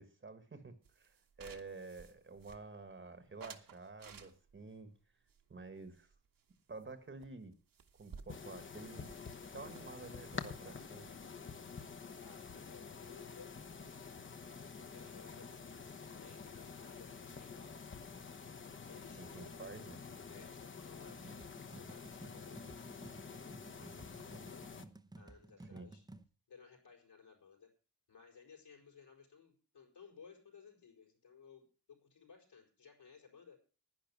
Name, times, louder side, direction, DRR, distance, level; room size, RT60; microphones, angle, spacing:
voice 1, 0.0-4.9 5.5-6.1 6.7-7.5 8.0-9.1 9.5-11.1 19.1-20.0 25.6-26.0, right 3 dB, 30° right, 11 dB, 1.3 m, -50 dB
sound 1, 0.8-2.9 3.4-4.7 5.3-6.5 6.8-6.9 7.2-7.3 7.5-11.4, right 6 dB, 55° right, 1.4 m, -57 dB
sound 2, 8.3-24.8, left 5 dB, 30° left, 0.9 m, -49 dB
voice 2, 12.2-14.2 14.7-17.9 18.9-19.5 20.3-21.3 21.7-24.6 25.1-26.0 26.5-27.7 28.1-33.6, left 6 dB, 75° left, 1 dB, 4.9 m, -59 dB
sound 3, 21.1-26.2, right 2 dB, 10° right, 0.7 m, -55 dB
11.0 x 10.5 x 6.0 m, 0.37 s
wide cardioid pair, 150°, 41 cm